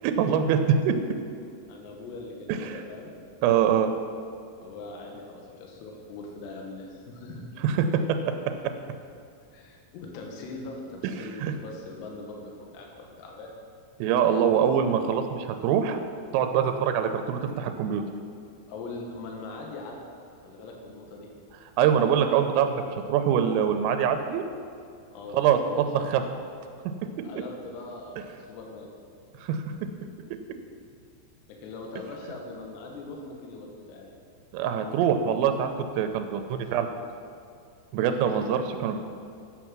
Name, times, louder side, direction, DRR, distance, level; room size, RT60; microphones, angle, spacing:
voice 1, 0.0-1.0 2.7-2.8 3.4-3.9 7.6-8.2 11.2-11.5 14.0-16.0 16.3-18.0 21.8-24.4 25.3-25.6 25.9-26.2 29.4-29.6 34.5-35.7 36.0-36.9 37.9-39.0, right 8 dB, 90° right, 7 dB, 3.2 m, -24 dB
voice 2, 1.7-3.1 4.6-7.5 9.5-13.5 18.7-20.0 20.4-21.3 25.1-26.1 27.2-28.9 31.5-34.1 36.6-36.7 38.1-38.6, left 3 dB, 70° left, 0 dB, 2.9 m, -41 dB
9.4 x 7.2 x 6.0 m, 2.5 s
omnidirectional pair, 5.8 m